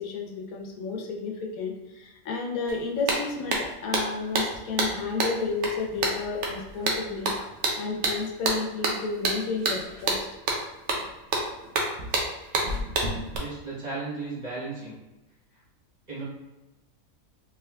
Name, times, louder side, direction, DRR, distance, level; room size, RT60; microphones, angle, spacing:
voice 1, 0.0-7.3 7.8-10.2, left 4 dB, 80° left, 0 dB, 1.1 m, -32 dB
sound 1, 2.7-2.8 3.1-13.4, right 2 dB, 65° right, 0.9 m, -28 dB
voice 2, 13.3-14.9 16.1-16.2, right 3 dB, 35° right, -8 dB, 1.1 m, -35 dB
3.3 x 3.1 x 2.3 m, 1.0 s
omnidirectional pair, 1.5 m